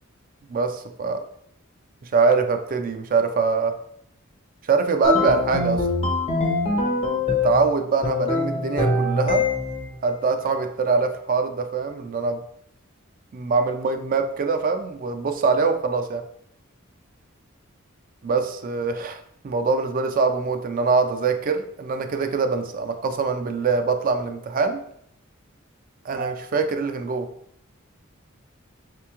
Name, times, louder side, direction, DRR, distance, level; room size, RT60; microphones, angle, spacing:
voice 1, 0.5-1.2 2.0-3.7 4.7-5.8 7.3-9.4 10.0-12.4 13.3-16.2 18.2-19.2 19.4-24.8 26.0-27.3, right 4 dB, 40° right, 6 dB, 0.4 m, -23 dB
sound 1, 5.0-7.7 8.0-9.9, left 3 dB, 30° left, 0.6 m, -23 dB
3.3 x 3.0 x 3.4 m, 0.70 s
head